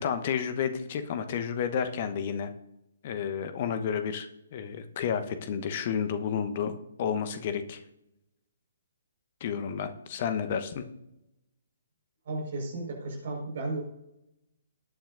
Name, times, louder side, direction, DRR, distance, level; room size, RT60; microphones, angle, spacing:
voice 1, 0.0-2.5 3.0-6.7 7.0-7.8 9.4-10.8, left 7 dB, 40° left, 9 dB, 1.1 m, -31 dB
voice 2, 12.2-13.8, right 2 dB, 50° right, -1 dB, 4.9 m, -34 dB
19.0 x 8.9 x 2.6 m, 0.87 s
figure-of-eight pair, 130°, 0 cm